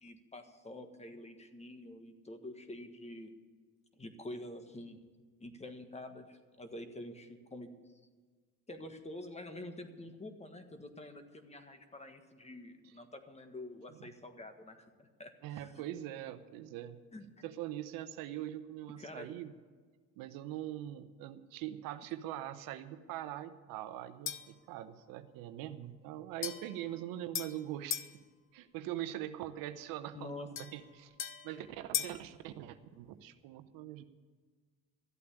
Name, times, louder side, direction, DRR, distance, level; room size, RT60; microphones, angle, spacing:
voice 1, 0.0-3.3 4.0-5.0 5.4-7.7 8.7-15.8 17.1-17.4 19.0-19.3 30.1-30.5, left 1 dB, 20° left, 7 dB, 1.5 m, -47 dB
voice 2, 15.4-17.0 17.4-19.5 20.2-28.2 28.5-31.1 31.4-34.0, right 12 dB, 70° right, 10 dB, 0.9 m, -42 dB
sound 1, 24.3-24.6 26.4-28.2 30.6-32.3, left 8 dB, 35° left, 0.9 m, -40 dB
13.5 x 8.5 x 8.3 m, 1.5 s
supercardioid pair, 90°, 35 cm